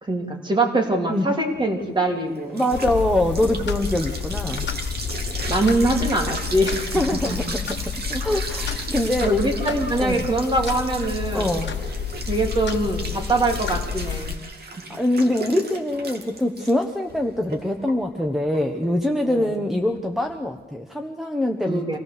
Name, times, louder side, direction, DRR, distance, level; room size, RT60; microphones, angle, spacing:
voice 1, 0.0-2.6 5.5-7.0 9.2-11.6 12.3-14.4 19.2-19.6 21.7-22.0, right 2 dB, 25° right, 2 dB, 2.9 m, -23 dB
sound 1, 1.5-20.6, right 3 dB, 60° right, 2.6 m, -36 dB
voice 2, 2.5-4.7 6.9-7.9 8.2-9.3 10.0-10.3 11.3-11.7 14.9-22.0, left 1 dB, ahead, 4 dB, 1.2 m, -24 dB
sound 2, 2.7-14.4, left 7 dB, 70° left, 1.2 m, -30 dB
25.5 x 18.0 x 6.8 m, 1.1 s
wide cardioid pair, 145°, 19 cm